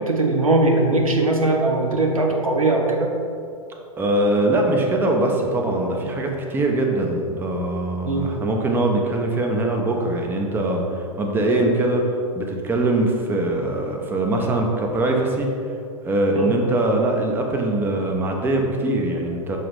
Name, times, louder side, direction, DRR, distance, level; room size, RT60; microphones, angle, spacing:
voice 1, 0.1-3.1 8.1-8.3 16.3-16.5, right 2 dB, 75° right, 1 dB, 0.9 m, -20 dB
voice 2, 4.0-15.5 16.0-19.6, right 2 dB, 10° right, 1 dB, 0.6 m, -22 dB
6.5 x 2.9 x 5.2 m, 2.4 s
figure-of-eight pair, 100°, 18 cm